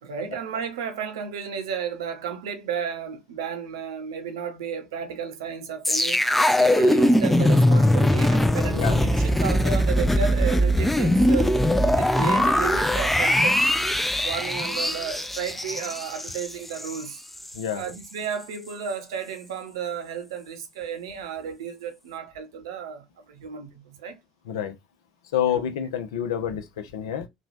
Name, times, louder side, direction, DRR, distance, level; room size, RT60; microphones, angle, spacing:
voice 1, 0.0-6.2 6.6-11.5 11.8-13.6 14.2-17.2 17.7-24.2, right 7 dB, 75° right, 0.7 m, -33 dB
sound 1, 5.8-17.0 17.4-17.5, left 1 dB, 5° left, 0.4 m, -21 dB
voice 2, 25.3-27.3, left 9 dB, 75° left, 0.6 m, -27 dB
3.1 x 2.3 x 2.5 m
hypercardioid pair, 65°, 3 cm